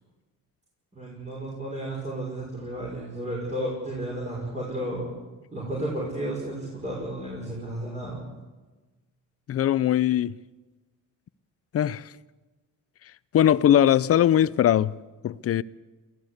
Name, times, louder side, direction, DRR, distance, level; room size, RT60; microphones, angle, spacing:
voice 1, 0.9-5.2 5.5-8.2, right 1 dB, 20° right, 6.1 m, -33 dB
voice 2, 9.5-10.3 11.7-12.1 13.3-14.9 15.2-15.6, left 10 dB, 45° left, 0.6 m, -20 dB
22.5 x 15.5 x 8.1 m
cardioid pair, 115°, 31 cm